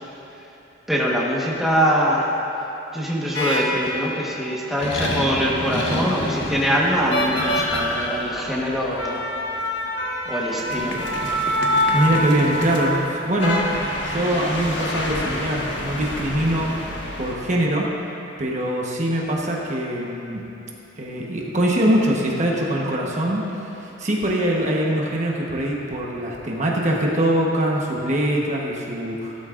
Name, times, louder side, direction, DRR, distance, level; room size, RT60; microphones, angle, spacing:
voice 1, 0.9-2.3 2.9-9.2 9.5-9.7 10.2-11.0, equal, ahead, -5 dB, 1.3 m, -23 dB
sound 1, 3.3-4.2 4.8-17.3, left 1 dB, 65° left, 1.5 m, -26 dB
voice 2, 11.9-16.7 17.2-17.9 18.4-20.4 21.0-23.4 23.8-29.4, right 1 dB, 40° right, -3 dB, 1.2 m, -23 dB
16.0 x 13.0 x 2.6 m, 3.0 s
head